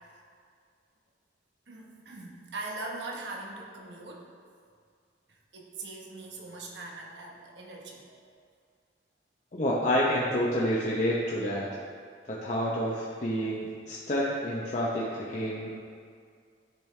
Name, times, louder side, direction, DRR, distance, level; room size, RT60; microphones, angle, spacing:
voice 1, 1.7-4.3 5.5-8.3, right 2 dB, 80° right, -1 dB, 1.1 m, -41 dB
voice 2, 9.5-11.7 12.3-15.7, equal, 40° left, -5 dB, 0.7 m, -28 dB
10.5 x 5.3 x 3.3 m, 2.2 s
head